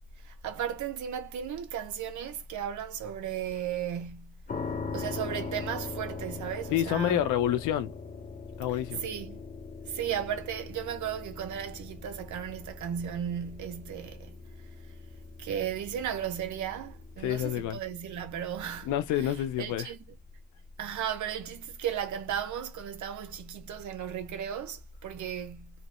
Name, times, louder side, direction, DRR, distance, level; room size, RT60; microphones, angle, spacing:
voice 1, 0.4-4.3 4.9-7.2 9.0-9.4 9.9-14.3 15.4-18.9 19.2-20.0 20.8-25.7, right 9 dB, 75° right, 1.0 m, -35 dB
sound 1, 4.5-19.3, left 4 dB, 30° left, 0.7 m, -42 dB
voice 2, 6.7-7.9 8.6-9.0 17.2-17.8 18.8-19.9, left 11 dB, 85° left, 0.5 m, -28 dB
3.2 x 3.0 x 2.9 m
cardioid pair, 90°, 30 cm